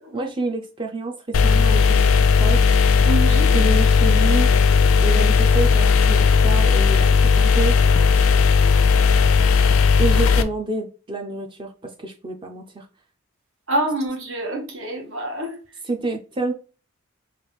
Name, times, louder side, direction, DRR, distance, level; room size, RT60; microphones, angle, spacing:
voice 1, 0.1-2.8 3.5-4.5 5.0-7.8 10.0-12.9 15.8-16.5, right 3 dB, 25° right, 0.5 m, -28 dB
sound 1, 1.3-10.4, left 5 dB, 75° left, 0.4 m, -16 dB
voice 2, 3.0-3.5 8.7-8.8 13.7-15.6, right 1 dB, 65° right, 1.1 m, -26 dB
3.2 x 2.4 x 4.3 m
head